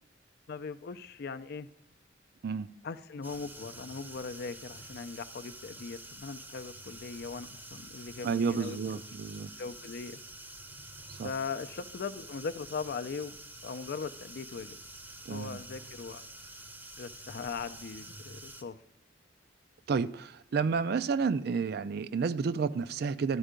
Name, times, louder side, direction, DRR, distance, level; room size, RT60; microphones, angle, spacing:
voice 1, 0.5-1.7 2.8-8.8 9.6-10.2 11.2-13.4 13.6-14.8 15.3-16.2 17.0-18.8, left 5 dB, 55° left, 12 dB, 0.4 m, -39 dB
sound 1, 3.2-18.6, right 1 dB, 10° right, 0.7 m, -48 dB
voice 2, 8.2-9.5 11.1-11.3 15.3-15.6 19.9-23.4, right 5 dB, 55° right, 13 dB, 0.4 m, -31 dB
12.0 x 4.5 x 5.0 m, 0.74 s
head